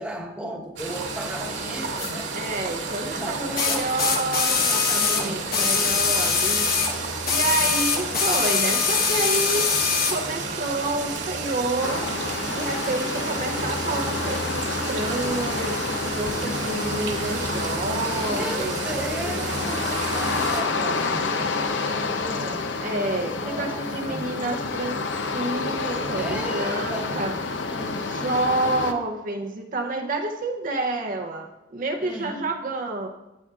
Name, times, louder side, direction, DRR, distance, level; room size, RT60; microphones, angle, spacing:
voice 1, 0.0-2.3 3.1-4.1 5.1-5.5 18.3-22.7 23.2-24.4 26.2-27.3 27.7-28.2 32.0-32.4, right 1 dB, 5° right, -1 dB, 1.1 m, -36 dB
sound 1, 0.8-20.6, right 3 dB, 90° right, 2.2 m, -31 dB
sound 2, 2.0-2.1 3.6-7.0 7.3-10.2 11.2-11.3, left 5 dB, 55° left, 1.2 m, -23 dB
voice 2, 2.3-6.7 7.3-9.7 10.1-12.1 12.5-18.8 22.8-27.4 27.9-33.1, right 2 dB, 45° right, 3 dB, 0.7 m, -29 dB
sound 3, 11.8-28.9, left 4 dB, 75° left, 0.7 m, -29 dB
15.0 x 8.4 x 2.4 m, 1.0 s
head